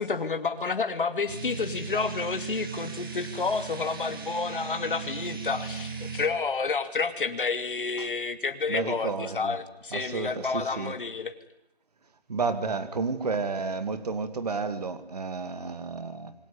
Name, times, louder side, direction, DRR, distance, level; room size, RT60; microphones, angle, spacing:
voice 1, 0.0-9.1 9.3-11.3, left 4 dB, 55° left, 2.9 m, -30 dB
sound 1, 1.3-6.3, right 5 dB, 20° right, 2.5 m, -37 dB
voice 2, 8.7-9.6 9.9-10.9 12.3-16.3, right 4 dB, 40° right, 2.2 m, -31 dB
27.0 x 22.0 x 9.9 m
hypercardioid pair, 175°, 31 cm